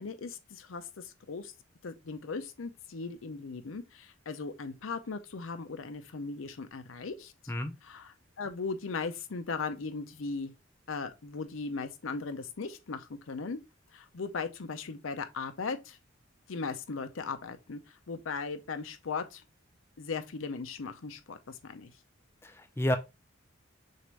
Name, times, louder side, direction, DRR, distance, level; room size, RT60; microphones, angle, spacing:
voice 1, 0.0-1.5 1.8-7.3 7.8-10.5 10.9-13.6 13.9-16.0 16.5-19.4 20.0-21.9, left 4 dB, 85° left, 0.6 m, -38 dB
voice 2, 22.4-23.0, left 1 dB, 10° left, 0.4 m, -30 dB
6.4 x 2.6 x 3.2 m
head